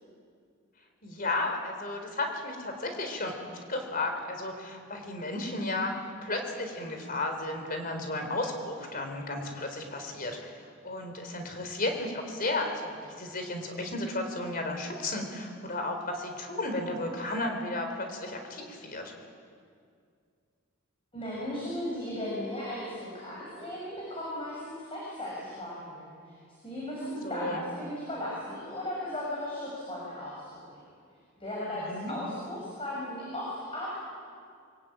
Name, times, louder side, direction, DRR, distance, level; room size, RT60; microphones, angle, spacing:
voice 1, 1.0-3.3 3.7-5.9 6.2-19.1 27.2-27.6 31.7-32.1, left 2 dB, 40° left, 5 dB, 4.0 m, -33 dB
voice 2, 21.1-26.3 26.6-30.8 31.4-33.9, left 1 dB, 25° left, -5 dB, 6.8 m, -36 dB
23.5 x 23.5 x 9.2 m, 2.2 s
head